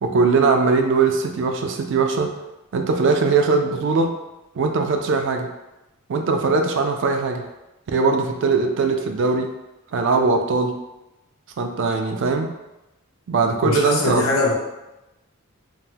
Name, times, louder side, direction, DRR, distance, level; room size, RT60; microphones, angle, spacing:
voice 1, 0.0-2.4 2.7-4.2 4.6-5.5 6.1-7.4 7.9-9.5 9.9-10.8 11.6-12.5 13.3-14.2, right 4 dB, 60° right, 5 dB, 0.4 m, -20 dB
voice 2, 13.6-14.5, left 2 dB, 75° left, -2 dB, 0.7 m, -21 dB
3.6 x 2.1 x 2.8 m, 0.97 s
head